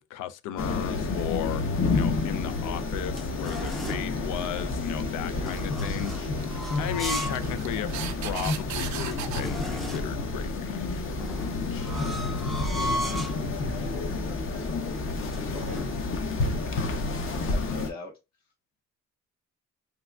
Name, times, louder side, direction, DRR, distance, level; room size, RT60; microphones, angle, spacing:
voice 1, 0.0-6.5 6.8-11.2, left 11 dB, 85° left, 0.4 m, -36 dB
sound 1, 0.6-17.9, left 3 dB, 45° left, 0.7 m, -30 dB
sound 2, 2.5-4.1 5.4-7.5 7.9-8.0 8.6-8.7 8.9-10.2 11.2-13.4 14.1-14.4 14.6-15.9, equal, ahead, 0.5 m, -36 dB
sound 3, 3.6-9.4, right 9 dB, 70° right, 0.5 m, -39 dB
voice 2, 12.8-15.9 16.2-18.1, left 2 dB, 60° left, 1.8 m, -43 dB
3.3 x 2.4 x 2.3 m
cardioid pair, 90°, 30 cm